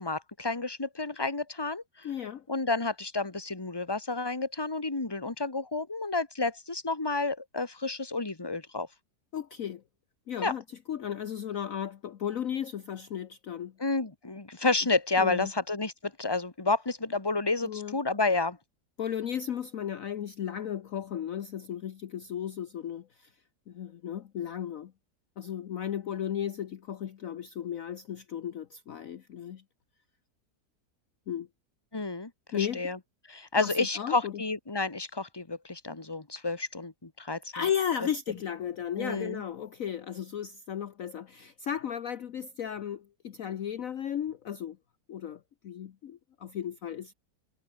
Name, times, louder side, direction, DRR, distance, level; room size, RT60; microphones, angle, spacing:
voice 1, 0.0-1.8 2.5-8.9 10.4-10.5 13.8-18.6 31.9-33.0 33.3-37.6 39.0-39.4, left 3 dB, 15° left, 1.9 m, -30 dB
voice 2, 2.0-2.4 9.3-9.8 10.3-13.7 15.2-15.5 17.6-18.0 19.0-23.3 23.7-24.9 25.4-29.6 31.3-31.5 32.5-32.9 33.6-34.4 37.5-44.8 45.1-47.1, left 9 dB, 55° left, 1.2 m, -35 dB
omnidirectional pair, 1.8 m